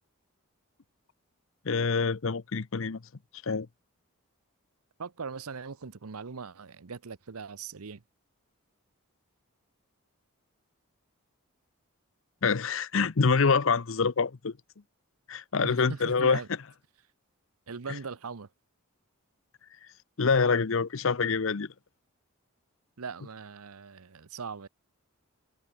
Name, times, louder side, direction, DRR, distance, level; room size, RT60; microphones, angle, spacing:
voice 1, 1.6-3.0 3.4-3.7 12.4-14.5 15.3-16.4 20.2-21.7, left 5 dB, 65° left, 0.7 m, -26 dB
voice 2, 5.0-8.0 15.6-16.5 17.7-18.5 23.0-24.7, right 5 dB, 85° right, 0.8 m, -40 dB
head